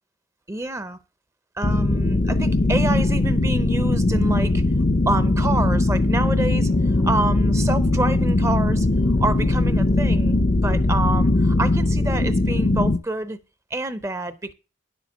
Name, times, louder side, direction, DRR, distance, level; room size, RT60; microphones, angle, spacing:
voice 1, 0.5-1.0 1.6-4.6 5.1-8.9 9.2-13.4 13.7-14.5, right 2 dB, 15° right, 0.5 m, -28 dB
sound 1, 1.6-13.0, left 2 dB, 35° left, 0.5 m, -20 dB
9.8 x 7.1 x 6.1 m
head